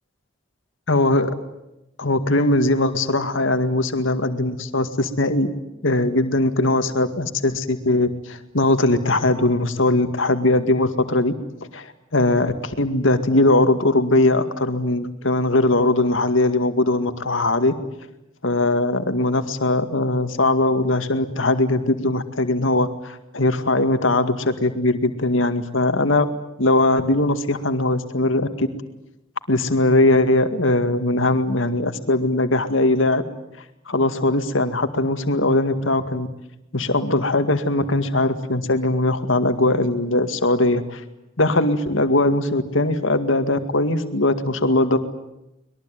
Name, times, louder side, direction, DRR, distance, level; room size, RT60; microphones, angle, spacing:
voice 1, 0.9-1.3 2.0-5.5 5.8-11.3 11.7-17.7 18.4-26.3 26.6-28.7 29.5-33.2 33.9-36.3 36.7-41.0 41.4-45.0, left 2 dB, 75° left, 8 dB, 2.1 m, -20 dB
24.0 x 22.0 x 9.2 m, 0.90 s
head